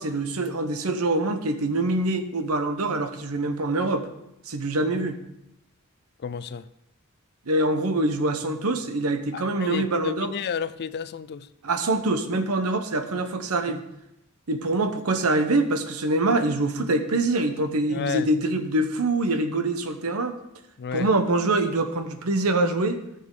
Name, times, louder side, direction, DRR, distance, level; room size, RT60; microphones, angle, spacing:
voice 1, 0.0-4.1 4.5-5.2 7.5-10.3 11.6-13.8 14.5-20.3 20.9-23.0, right 2 dB, 80° right, 0.9 m, -24 dB
voice 2, 6.2-6.7 9.3-11.5 13.7-13.8 17.9-18.3 20.8-21.1, left 7 dB, 50° left, 0.4 m, -32 dB
14.0 x 6.9 x 3.8 m
head